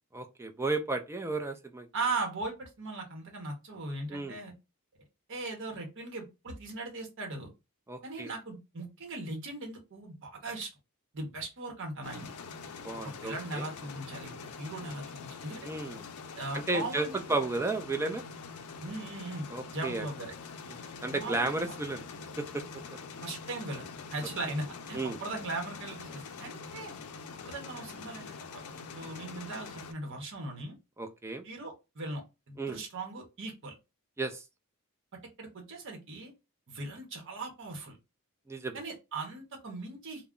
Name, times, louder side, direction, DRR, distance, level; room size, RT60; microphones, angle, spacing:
voice 1, 0.1-1.9 4.1-4.4 7.9-8.3 12.8-13.7 15.6-16.0 16.5-18.2 19.5-20.1 20.7-22.0 22.5-22.6 22.9-23.0 24.9-25.2 31.0-31.4 32.6-32.8 34.2-34.4 38.5-38.8, right 3 dB, 10° right, 0.4 m, -33 dB
voice 2, 1.9-4.5 5.3-7.5 8.0-10.7 11.1-12.4 13.0-15.7 16.4-17.4 18.8-19.5 19.7-20.3 21.1-21.7 23.2-26.9 27.4-28.6 28.9-30.7 31.4-32.2 32.5-33.8 35.1-36.3 36.7-38.0 38.7-40.3, right 2 dB, 60° right, 0.8 m, -39 dB
sound 1, 12.0-29.9, left 5 dB, 70° left, 0.4 m, -45 dB
2.3 x 2.0 x 3.6 m
head